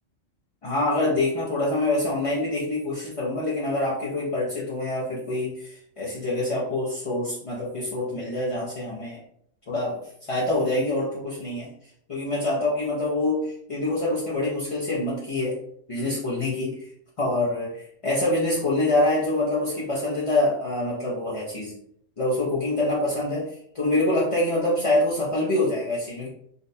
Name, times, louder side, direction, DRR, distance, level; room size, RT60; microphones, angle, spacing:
voice 1, 0.6-9.2 9.7-11.7 12.1-15.6 15.9-16.8 17.2-21.7 22.2-26.3, left 2 dB, 45° left, -6 dB, 0.4 m, -25 dB
3.9 x 2.1 x 2.6 m, 0.69 s
omnidirectional pair, 1.4 m